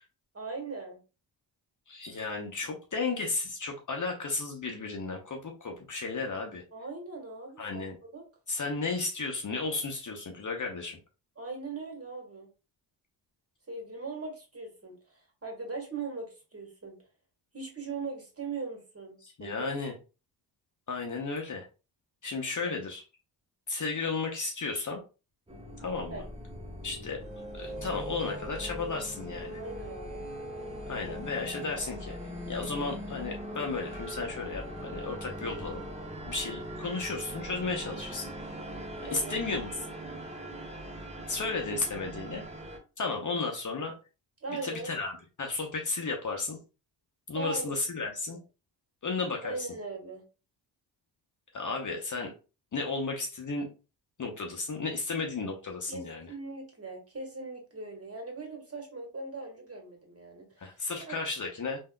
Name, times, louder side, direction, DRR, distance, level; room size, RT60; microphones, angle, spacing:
voice 1, 0.3-1.0 6.7-8.2 11.4-12.5 13.7-17.0 17.5-19.7 22.7-22.8 26.1-26.2 29.6-30.3 39.1-39.4 44.4-44.9 47.3-47.8 49.4-50.2 55.9-60.8 61.1-61.2, right 3 dB, 30° right, 1 dB, 1.7 m, -40 dB
voice 2, 1.9-6.6 7.6-8.0 8.5-11.0 19.2-19.9 20.9-21.7 22.2-23.0 23.7-25.0 25.8-26.2 26.8-27.2 27.5-29.6 30.9-32.2 32.5-35.8 36.3-38.3 39.1-39.8 41.3-42.4 43.0-43.9 44.6-45.1 45.4-46.6 47.3-48.4 49.0-49.7 51.5-52.3 52.7-53.7 54.2-56.3 60.6-61.8, left 3 dB, 40° left, 2 dB, 0.9 m, -34 dB
sound 1, 25.5-42.8, equal, 15° right, 1.1 m, -40 dB
3.4 x 2.7 x 2.3 m, 0.32 s
supercardioid pair, 55°, 46 cm